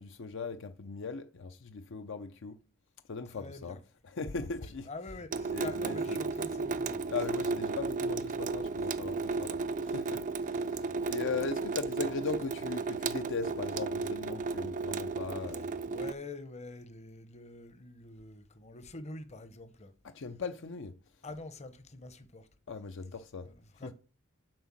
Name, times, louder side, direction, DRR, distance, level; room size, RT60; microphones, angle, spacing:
voice 1, 0.0-2.6 3.1-3.8 4.1-4.9 5.5-6.2 7.1-15.7 20.1-20.9 22.7-23.5 23.8-23.9, left 4 dB, 60° left, 0.6 m, -39 dB
voice 2, 3.3-3.8 4.9-7.1 15.5-19.9 21.2-22.5 23.4-23.9, left 3 dB, 30° left, 0.9 m, -46 dB
Water tap faucet / Sink (filling or washing) / Drip, 5.3-16.1, right 4 dB, 40° right, 0.4 m, -34 dB
7.7 x 5.2 x 7.2 m
head